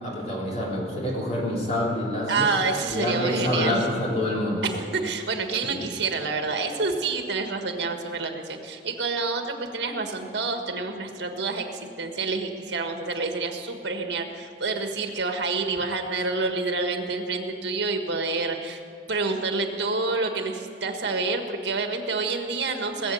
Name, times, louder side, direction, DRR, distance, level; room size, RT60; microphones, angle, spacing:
voice 1, 0.0-2.5 2.9-4.7 5.6-5.8, left 1 dB, 40° left, -4 dB, 3.4 m, -27 dB
voice 2, 2.3-3.9 4.6-18.8 19.1-23.1, right 3 dB, 80° right, 5 dB, 1.6 m, -28 dB
20.0 x 7.6 x 7.9 m, 2.3 s
head